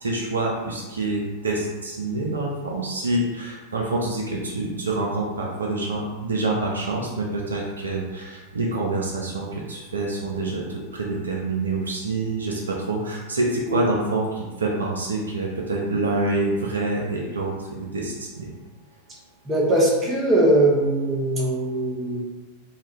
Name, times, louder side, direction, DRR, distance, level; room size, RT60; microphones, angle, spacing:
voice 1, 0.0-18.5, right 2 dB, 75° right, -2 dB, 0.4 m, -26 dB
voice 2, 19.4-22.2, right 1 dB, 20° right, -4 dB, 0.7 m, -20 dB
2.3 x 2.2 x 2.9 m, 1.2 s
figure-of-eight pair, 90°, 0 cm